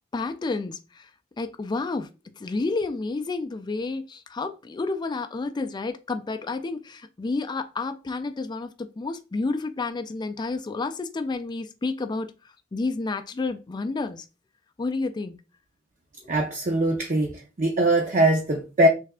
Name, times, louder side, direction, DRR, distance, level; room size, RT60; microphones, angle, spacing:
voice 1, 0.1-1.1 1.4-2.1 2.3-12.3 12.7-14.3 14.8-15.3 16.2-16.3, left 3 dB, 20° left, 0.3 m, -30 dB
voice 2, 16.3-18.9, right 1 dB, 40° right, 0.6 m, -22 dB
3.3 x 3.2 x 3.5 m
head